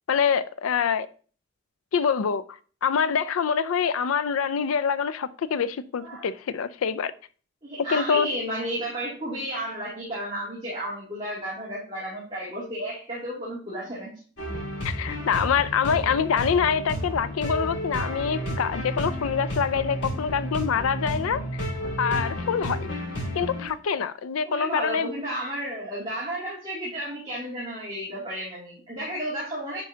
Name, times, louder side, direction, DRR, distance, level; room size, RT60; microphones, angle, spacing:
voice 1, 0.1-1.1 1.9-7.1 7.8-8.3 14.8-21.7 22.0-22.9 23.3-25.1, left 6 dB, 90° left, 0.4 m, -25 dB
voice 2, 7.6-14.2 24.4-29.8, right 1 dB, 20° right, 2.6 m, -32 dB
sound 1, 14.4-23.7, equal, 55° left, 3.2 m, -31 dB
9.8 x 5.3 x 2.8 m
head